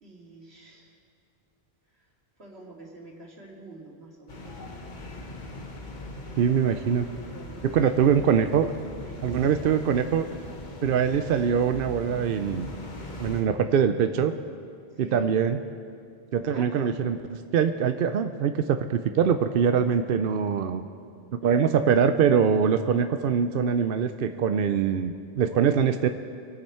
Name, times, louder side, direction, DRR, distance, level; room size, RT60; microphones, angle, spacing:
voice 1, 0.0-0.9 2.0-2.1 2.4-4.5 7.3-8.0 9.0-9.7 14.9-15.3 16.3-16.9 21.4-21.8 25.5-25.8, right 2 dB, 90° right, -2 dB, 2.5 m, -47 dB
sound 1, 4.3-13.4, left 2 dB, 50° left, 1.4 m, -40 dB
voice 2, 6.4-7.1 7.6-8.7 9.2-10.3 10.8-12.7 13.2-14.3 15.0-15.6 16.3-20.8 21.3-26.1, right 7 dB, 65° right, 8 dB, 0.7 m, -23 dB
24.0 x 8.9 x 4.3 m, 2.3 s
omnidirectional pair, 1.0 m